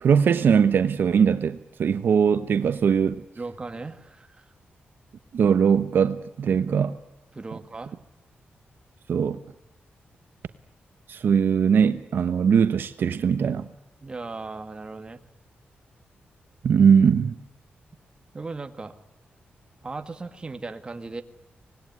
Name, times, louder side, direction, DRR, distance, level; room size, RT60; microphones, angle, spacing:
voice 1, 0.0-3.1 5.3-7.0 9.1-9.4 11.1-13.7 16.6-17.3, right 7 dB, 65° right, 1.1 m, -20 dB
voice 2, 3.4-4.5 7.3-8.0 14.0-15.2 18.3-18.9 19.8-21.2, right 3 dB, 25° right, 1.9 m, -37 dB
25.0 x 20.0 x 9.6 m
wide cardioid pair, 130°, 4 cm